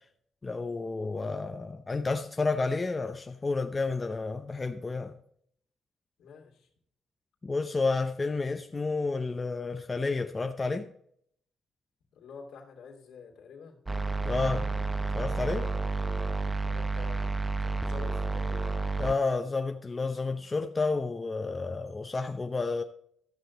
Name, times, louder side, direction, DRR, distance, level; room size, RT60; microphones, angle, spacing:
voice 1, 0.4-5.1 7.4-10.9 14.2-14.7 15.1-15.6 19.0-22.8, left 3 dB, 25° left, 0.7 m, -30 dB
voice 2, 6.2-6.7 12.1-13.8 15.5-15.8 16.7-18.7, left 5 dB, 75° left, 2.5 m, -48 dB
sound 1, 13.9-19.1, right 3 dB, 20° right, 0.6 m, -30 dB
13.0 x 6.7 x 4.0 m
cardioid pair, 90°, 0 cm